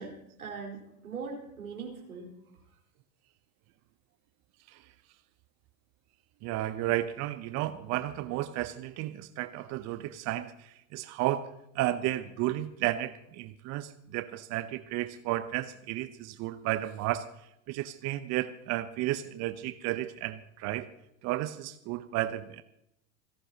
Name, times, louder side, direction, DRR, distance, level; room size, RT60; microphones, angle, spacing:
voice 1, 0.0-2.3, right 5 dB, 85° right, -1 dB, 4.2 m, -41 dB
voice 2, 6.4-11.5 11.7-17.3 17.7-20.9 21.2-22.6, right 14 dB, 40° right, 12 dB, 0.8 m, -33 dB
28.0 x 11.5 x 2.9 m, 0.81 s
hypercardioid pair, 90°, 42 cm